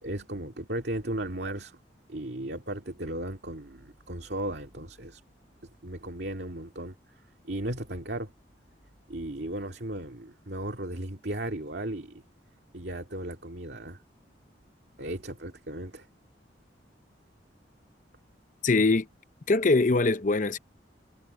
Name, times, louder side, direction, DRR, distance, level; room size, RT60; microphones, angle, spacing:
voice 1, 0.0-1.8 2.1-5.2 5.8-6.9 7.4-8.3 9.1-12.2 12.7-14.0 15.0-16.1, right 1 dB, 65° right, 2.5 m, -35 dB
voice 2, 18.6-19.1 19.5-20.6, left 3 dB, 45° left, 0.7 m, -22 dB
head